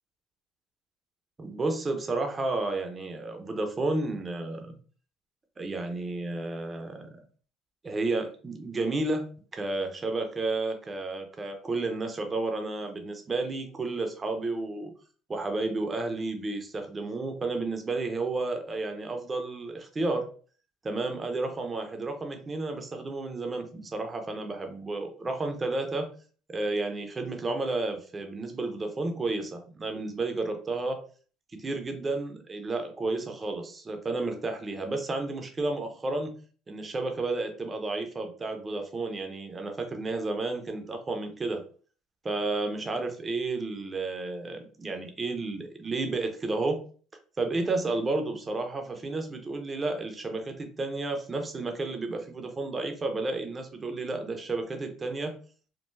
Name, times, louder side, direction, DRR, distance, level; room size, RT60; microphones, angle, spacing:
voice 1, 1.4-4.8 5.6-7.2 7.8-9.3 9.5-14.9 15.3-20.3 20.8-26.1 26.5-31.0 31.5-36.3 36.7-41.6 42.2-46.8 47.4-55.3, right 2 dB, 25° right, 5 dB, 0.8 m, -31 dB
3.7 x 2.2 x 2.6 m, 0.41 s
supercardioid pair, 85°, 0 cm